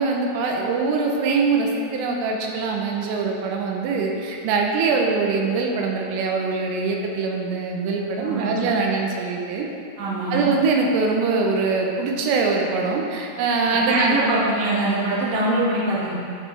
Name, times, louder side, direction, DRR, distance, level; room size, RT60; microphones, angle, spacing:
voice 1, 0.0-9.7 10.3-14.2, right 4 dB, 90° right, 0 dB, 3.4 m, -23 dB
voice 2, 8.2-8.6 10.0-10.5 13.9-16.1, right 2 dB, 60° right, -8 dB, 2.7 m, -23 dB
13.0 x 5.4 x 3.2 m, 2.5 s
omnidirectional pair, 5.6 m